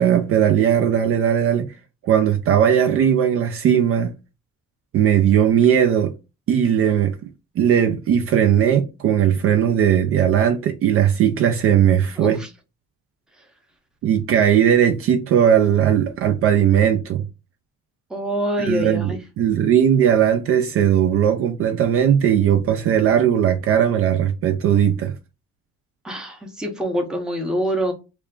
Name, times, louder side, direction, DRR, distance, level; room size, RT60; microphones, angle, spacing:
voice 1, 0.0-1.7 2.0-4.1 4.9-6.1 6.5-7.2 7.6-12.4 14.0-17.2 18.6-25.1, right 9 dB, 45° right, 0.4 m, -18 dB
voice 2, 12.2-12.5 18.1-19.2 26.0-27.9, equal, ahead, 0.7 m, -25 dB
3.2 x 2.4 x 3.6 m
cardioid pair, 175°, 31 cm